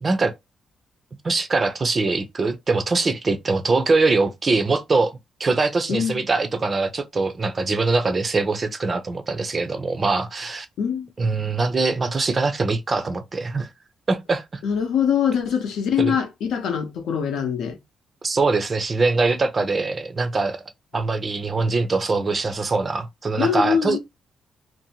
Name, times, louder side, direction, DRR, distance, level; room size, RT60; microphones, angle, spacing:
voice 1, 0.0-0.3 1.2-10.7 11.2-13.7 14.1-14.4 16.0-16.2 18.2-20.6 20.9-24.0, right 3 dB, 30° right, 0.4 m, -22 dB
voice 2, 5.9-6.2 10.8-11.1 14.6-17.8 23.4-24.0, left 7 dB, 90° left, 0.7 m, -23 dB
2.6 x 2.1 x 2.7 m
cardioid pair, 150°, 0 cm